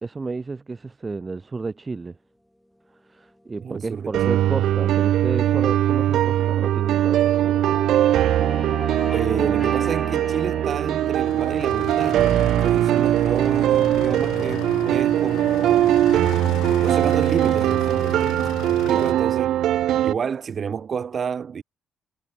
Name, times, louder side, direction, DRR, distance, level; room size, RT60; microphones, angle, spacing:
voice 1, 0.0-2.2 3.1-7.8 18.9-19.2, right 3 dB, 25° right, 2.0 m, -32 dB
sound 1, 3.5-16.1, left 1 dB, 5° left, 6.9 m, -38 dB
voice 2, 3.6-4.1 9.1-16.0 16.8-19.5 20.0-21.6, right 6 dB, 50° right, 4.4 m, -30 dB
sound 2, 4.1-20.1, right 12 dB, 80° right, 0.7 m, -21 dB
sound 3, 11.2-19.1, left 15 dB, 90° left, 5.7 m, -36 dB
cardioid pair, 90°, 0 cm